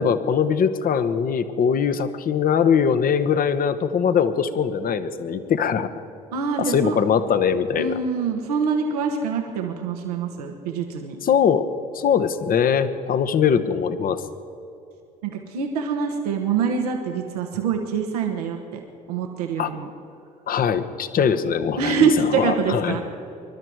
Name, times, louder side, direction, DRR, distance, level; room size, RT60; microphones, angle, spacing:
voice 1, 0.0-5.9 6.6-8.0 11.2-11.6 11.9-14.2 19.6-19.7 20.5-22.1 22.3-23.0, left 7 dB, 50° left, 11 dB, 1.0 m, -21 dB
voice 2, 6.3-7.0 7.8-11.2 15.2-18.8 19.1-19.9 21.8-23.0, right 5 dB, 85° right, 2 dB, 1.1 m, -25 dB
22.5 x 12.0 x 4.7 m, 2.7 s
hypercardioid pair, 55°, 19 cm